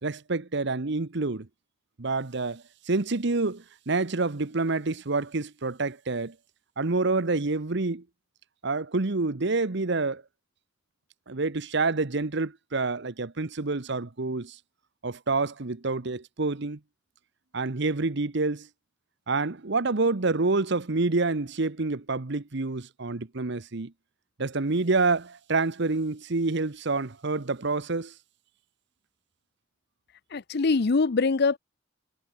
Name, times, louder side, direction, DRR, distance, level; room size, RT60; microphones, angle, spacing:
voice 1, 0.0-1.5 2.0-6.3 6.8-8.0 8.6-10.2 11.3-14.6 15.0-16.8 17.5-18.7 19.3-23.9 24.4-28.1, right 3 dB, 65° right, 1.1 m, -27 dB
voice 2, 30.3-31.6, left 4 dB, 60° left, 0.6 m, -23 dB
head